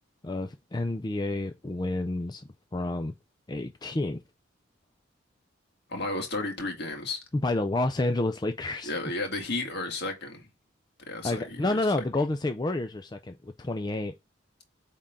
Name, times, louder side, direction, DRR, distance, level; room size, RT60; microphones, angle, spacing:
voice 1, 0.2-3.1 3.5-4.2 7.4-8.9 11.2-14.1, left 2 dB, 20° left, 0.4 m, -29 dB
voice 2, 5.9-7.2 8.8-10.5 11.1-12.0, left 2 dB, 55° left, 2.1 m, -33 dB
8.5 x 3.7 x 3.7 m
head